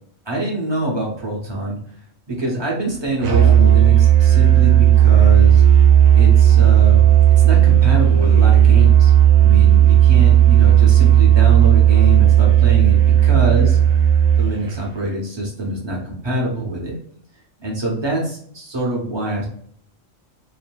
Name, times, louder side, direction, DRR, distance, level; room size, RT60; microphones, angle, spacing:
voice 1, 0.3-1.8 2.3-5.6 6.1-7.1 7.4-9.1 9.4-13.8 14.4-17.0 17.6-19.4, right 1 dB, 25° right, -3 dB, 0.8 m, -24 dB
Musical instrument, 3.2-14.9, right 10 dB, 80° right, 1.1 m, -12 dB
2.7 x 2.6 x 2.2 m, 0.63 s
omnidirectional pair, 1.4 m